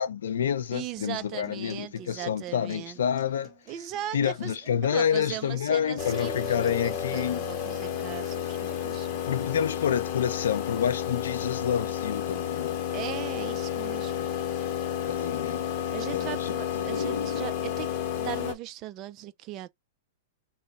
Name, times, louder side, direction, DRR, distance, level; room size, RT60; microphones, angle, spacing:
voice 1, 0.0-3.5 4.1-7.5 9.3-12.8 15.1-15.7 16.1-17.5, left 8 dB, 80° left, 0.5 m, -28 dB
voice 2, 0.7-3.0 3.7-4.6 4.8-9.2 12.9-14.3 15.9-17.9 18.2-19.7, right 13 dB, 40° right, 0.5 m, -38 dB
Acoustic guitar, 1.0-9.0, left 1 dB, 15° right, 2.0 m, -53 dB
sound 1, 6.0-18.5, left 9 dB, 50° left, 0.8 m, -31 dB
3.0 x 2.2 x 4.0 m
hypercardioid pair, 120°, 0 cm